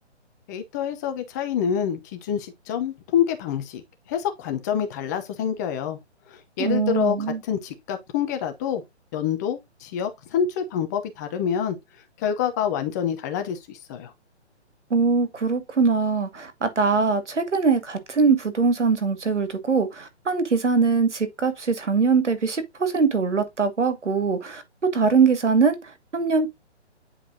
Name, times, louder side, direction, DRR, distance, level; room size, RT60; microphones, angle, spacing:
voice 1, 0.5-3.8 4.1-6.0 6.3-7.2 7.5-8.8 9.1-11.8 12.2-14.1, left 8 dB, 15° left, 0.7 m, -27 dB
voice 2, 6.6-7.4 14.9-24.6 24.9-26.5, right 5 dB, 85° right, 2.3 m, -22 dB
9.4 x 4.8 x 2.7 m
hypercardioid pair, 150°, 35 cm